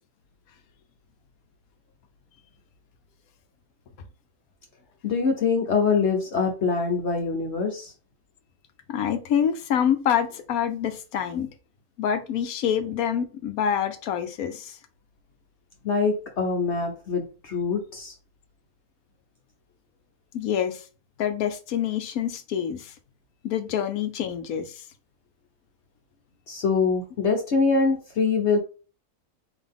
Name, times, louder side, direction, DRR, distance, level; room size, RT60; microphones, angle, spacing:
voice 1, 5.0-7.9 15.8-18.1 26.5-28.6, left 4 dB, 60° left, 1.0 m, -24 dB
voice 2, 8.9-11.5 12.0-14.8 20.3-20.8 21.2-22.9 23.4-24.8, left 8 dB, 85° left, 1.2 m, -26 dB
3.9 x 2.8 x 3.5 m
omnidirectional pair, 1.5 m